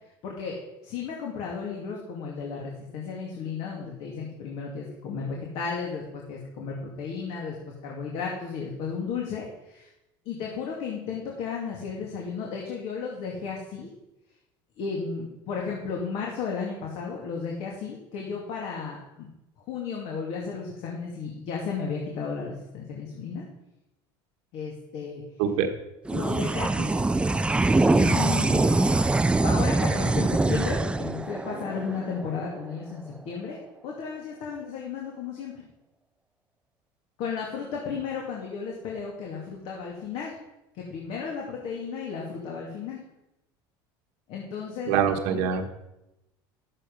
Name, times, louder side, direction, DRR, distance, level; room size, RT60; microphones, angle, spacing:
voice 1, 0.2-0.6 0.8-7.6 7.8-9.9 10.3-13.9 14.8-19.3 19.7-23.4 24.5-25.2 26.1-27.0 27.9-28.8 29.4-35.6 37.2-40.4 40.7-43.0 44.3-45.1, left 5 dB, 65° left, -1 dB, 2.5 m, -34 dB
sound 1, 26.1-32.8, right 2 dB, 10° right, 0.4 m, -23 dB
voice 2, 44.9-45.7, right 8 dB, 75° right, 3 dB, 1.3 m, -24 dB
11.5 x 8.3 x 5.4 m, 0.93 s
supercardioid pair, 100°, 11 cm